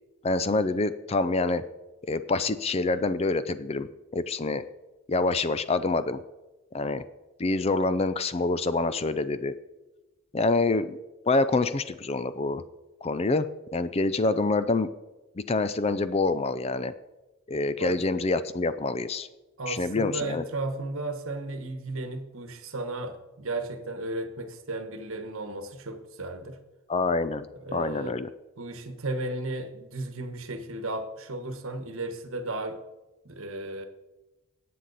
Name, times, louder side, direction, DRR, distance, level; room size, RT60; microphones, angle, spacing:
voice 1, 0.2-1.6 2.1-4.6 5.1-6.2 6.7-7.0 7.4-9.5 10.3-11.0 11.3-12.6 13.0-13.5 13.7-14.9 15.5-16.9 17.5-19.3 19.7-20.4 26.9-27.5 27.7-28.3, left 3 dB, 25° left, 0.4 m, -26 dB
voice 2, 19.6-26.6 27.6-28.2 28.6-32.8 33.2-33.8, right 2 dB, 65° right, 1.2 m, -34 dB
17.5 x 7.6 x 4.1 m
head